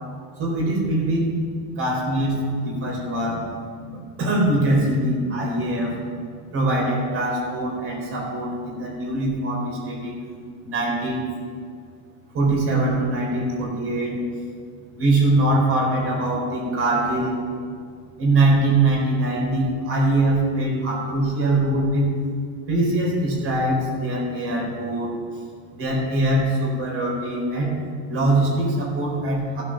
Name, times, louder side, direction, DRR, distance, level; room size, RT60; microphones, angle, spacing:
voice 1, 0.4-1.4 1.8-3.5 3.9-6.0 6.5-10.1 10.6-11.2 12.3-14.2 14.9-17.4 18.2-22.1 22.7-25.2 25.7-27.7 28.1-29.6, right 1 dB, 30° right, -2 dB, 4.1 m, -22 dB
15.0 x 9.0 x 6.5 m, 2.2 s
cardioid pair, 160°, 42 cm